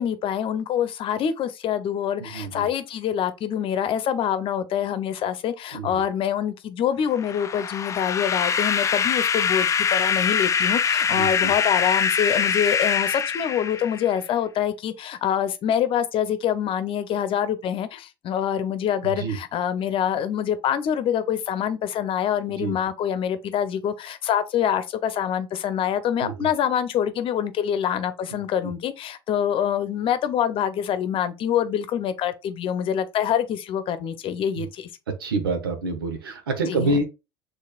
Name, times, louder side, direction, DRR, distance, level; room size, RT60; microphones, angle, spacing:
voice 1, 0.0-34.9 36.7-37.0, left 9 dB, 50° left, 0.8 m, -25 dB
voice 2, 2.2-2.7 5.7-6.0 11.1-11.5 19.0-19.4 22.6-22.8 26.2-26.5 28.3-28.7 34.6-34.7 35.2-37.1, right 3 dB, 90° right, 1.0 m, -28 dB
sound 1, 7.2-14.2, left 7 dB, 25° left, 0.4 m, -23 dB
6.5 x 3.2 x 2.4 m
hypercardioid pair, 75°, 12 cm